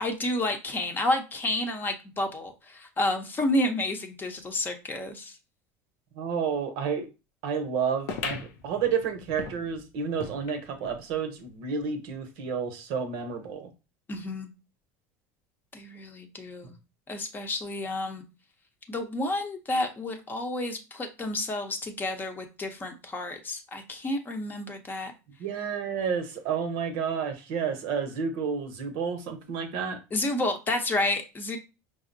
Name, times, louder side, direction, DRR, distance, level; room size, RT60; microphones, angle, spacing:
voice 1, 0.0-5.4 14.1-14.5 15.7-16.7 17.1-18.2 18.9-25.1 30.1-31.6, left 1 dB, 25° left, 0.7 m, -30 dB
voice 2, 6.1-7.1 7.4-13.7 25.4-30.0, right 6 dB, 70° right, 0.8 m, -30 dB
sound 1, 8.1-11.0 11.5-11.6 11.8-11.9 12.7-12.8, left 6 dB, 70° left, 0.5 m, -39 dB
5.0 x 2.1 x 2.6 m
supercardioid pair, 105°, 8 cm